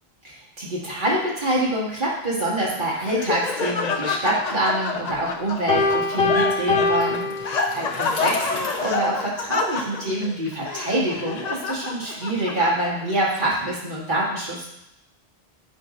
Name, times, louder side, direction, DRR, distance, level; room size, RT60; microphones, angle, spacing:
voice 1, 0.2-14.7, right 1 dB, 50° right, -5 dB, 1.9 m, -26 dB
Laughter, 2.6-13.2, left 4 dB, 50° left, 0.6 m, -29 dB
Piano, 5.7-8.1, left 3 dB, 70° left, 1.5 m, -23 dB
Bicycle, 6.8-10.7, left 2 dB, 85° left, 1.3 m, -39 dB
8.1 x 2.8 x 5.1 m, 0.81 s
omnidirectional pair, 1.1 m